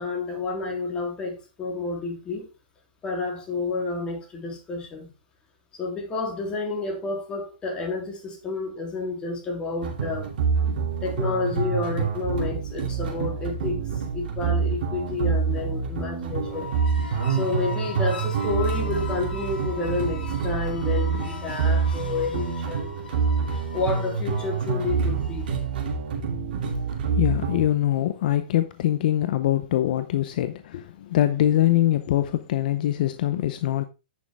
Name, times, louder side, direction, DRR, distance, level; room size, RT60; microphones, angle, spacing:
voice 1, 0.0-2.5 3.0-5.1 5.7-10.3 11.0-16.7 17.3-22.9 23.7-25.5, left 3 dB, 15° left, 3.3 m, -30 dB
sound 1, 9.8-27.7, right 5 dB, 65° right, 2.8 m, -27 dB
sound 2, 16.3-25.7, left 4 dB, 70° left, 5.3 m, -40 dB
voice 2, 27.1-33.8, left 13 dB, 55° left, 0.7 m, -23 dB
9.6 x 6.4 x 3.6 m
hypercardioid pair, 150°, 5 cm